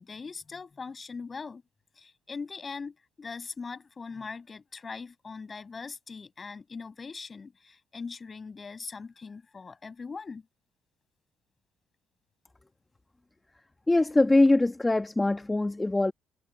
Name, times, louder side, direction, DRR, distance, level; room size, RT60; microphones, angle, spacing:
voice 1, 0.0-1.6 2.0-10.5, left 4 dB, 35° left, 7.6 m, -41 dB
voice 2, 13.9-16.1, left 2 dB, 15° left, 1.3 m, -22 dB
hypercardioid pair, 50°, 0 cm